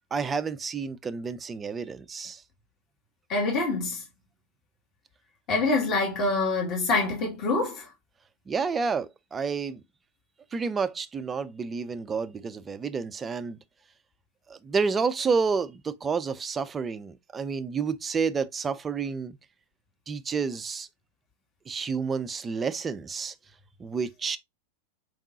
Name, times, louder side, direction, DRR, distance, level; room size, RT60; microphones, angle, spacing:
voice 1, 0.1-2.4 8.5-9.8 10.5-13.6 14.5-19.4 20.1-20.9 21.7-23.3 23.8-24.4, right 5 dB, 20° right, 0.4 m, -30 dB
voice 2, 3.3-4.0 5.5-7.9, left 3 dB, 35° left, 1.9 m, -25 dB
4.6 x 3.6 x 2.7 m
figure-of-eight pair, 90°, 0 cm